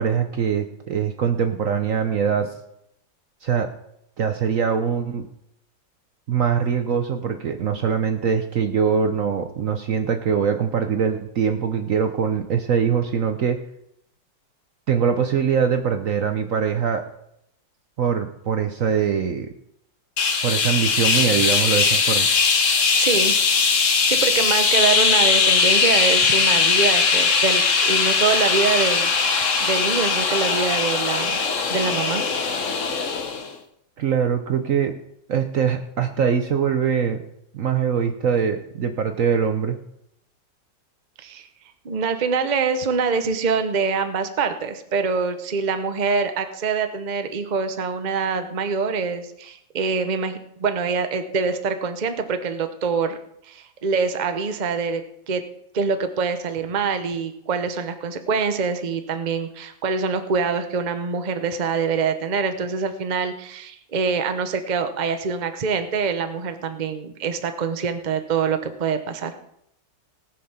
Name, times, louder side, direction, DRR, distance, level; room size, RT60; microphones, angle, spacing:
voice 1, 0.0-2.5 3.4-3.7 4.2-5.2 6.3-13.6 14.9-17.0 18.0-19.5 20.4-22.3 34.0-34.9 35.3-37.2 37.5-39.8, right 7 dB, 55° right, 7 dB, 1.0 m, -22 dB
sound 1, 20.2-33.5, left 5 dB, 45° left, 1.4 m, -20 dB
voice 2, 23.0-23.3 23.7-29.3 29.6-31.4 31.7-32.2 41.2-41.4 41.8-53.2 53.5-55.0 55.3-55.4 55.7-69.3, right 5 dB, 35° right, 8 dB, 0.8 m, -25 dB
18.5 x 6.7 x 5.7 m, 0.77 s
omnidirectional pair, 2.0 m